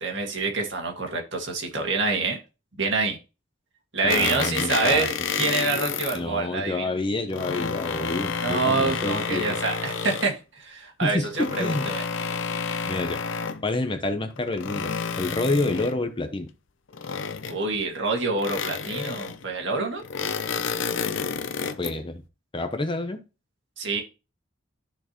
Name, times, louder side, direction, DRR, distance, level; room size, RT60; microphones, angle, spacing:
voice 1, 0.0-2.4 2.8-3.2 3.9-6.9 8.4-12.0 17.5-20.0 23.8-24.0, right 3 dB, 60° right, 1.9 m, -26 dB
voice 2, 4.0-5.1 6.1-9.4 11.0-11.9 12.9-13.2 13.6-16.5 21.8-22.2 22.5-23.2, left 2 dB, 25° left, 0.7 m, -28 dB
sound 1, 4.1-6.2 7.1-10.4 11.3-13.7 14.3-16.1 16.9-17.8 18.4-19.5 20.0-22.0, left 6 dB, 70° left, 0.7 m, -30 dB
12.5 x 4.5 x 3.0 m
head